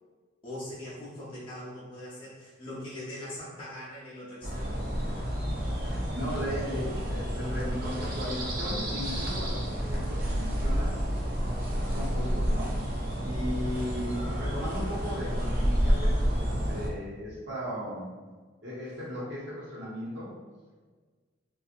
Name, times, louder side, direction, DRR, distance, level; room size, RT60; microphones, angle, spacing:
voice 1, 0.4-4.8, left 1 dB, 30° left, -8 dB, 0.6 m, -41 dB
sound 1, 4.4-16.9, equal, 50° right, 0.5 m, -30 dB
voice 2, 5.5-10.9 11.8-12.8 13.2-18.2 18.6-20.3, equal, 70° right, -9 dB, 1.0 m, -36 dB
2.6 x 2.4 x 2.5 m, 1.4 s
head